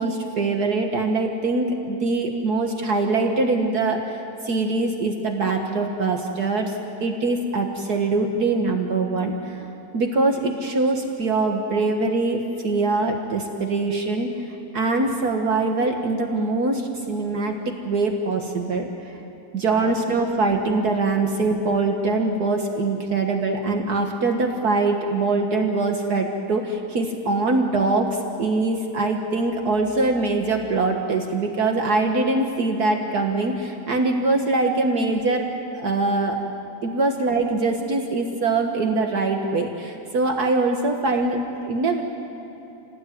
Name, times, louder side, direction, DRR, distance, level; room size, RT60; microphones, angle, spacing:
voice 1, 0.0-6.7 7.0-9.6 9.9-14.3 14.7-19.1 19.5-35.5 35.7-36.4 36.8-42.0, right 3 dB, 65° right, 3 dB, 2.0 m, -23 dB
28.5 x 18.5 x 9.4 m, 2.9 s
omnidirectional pair, 1.8 m